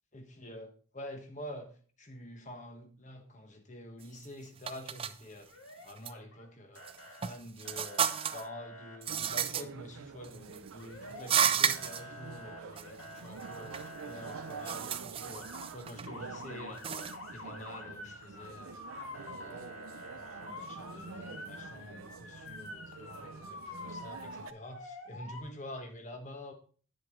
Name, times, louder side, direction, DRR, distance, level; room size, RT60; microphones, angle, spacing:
voice 1, 0.1-5.5 5.8-8.1 8.3-16.8 17.3-18.8 19.1-26.5, left 1 dB, 35° left, 5 dB, 1.3 m, -47 dB
sound 1, 4.0-4.3 4.7-5.1 5.9-6.1 6.8-8.5 9.0-9.6 10.2-10.7 11.2-12.0 12.8-12.9 13.2-13.9 14.3-16.1 16.7-17.2, right 8 dB, 25° right, 0.3 m, -32 dB
Motor vehicle (road) / Siren, 5.5-6.5 6.8-7.3 7.6-9.0 10.8-11.5 11.7-14.7 15.2-15.7 16.1-25.4, left 1 dB, 80° left, 1.9 m, -47 dB
sound 2, 9.1-24.5, right 5 dB, 90° right, 0.6 m, -47 dB
8.8 x 7.6 x 3.7 m, 0.42 s
head